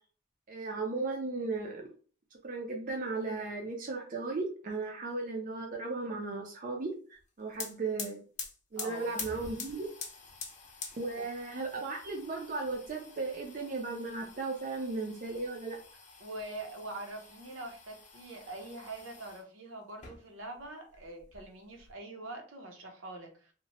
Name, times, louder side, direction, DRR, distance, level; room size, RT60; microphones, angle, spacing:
voice 1, 0.5-1.8 2.4-8.2 8.7-9.9 11.0-15.8, right 3 dB, 40° right, 0 dB, 0.4 m, -36 dB
sound 1, 7.2-7.3 7.5-19.4 19.9-20.7 20.9-21.9, left 5 dB, 35° left, 0.6 m, -47 dB
voice 2, 8.8-9.1 11.1-11.3 16.2-23.5, right 2 dB, 75° right, 2 dB, 0.7 m, -44 dB
2.8 x 2.1 x 2.9 m, 0.41 s
head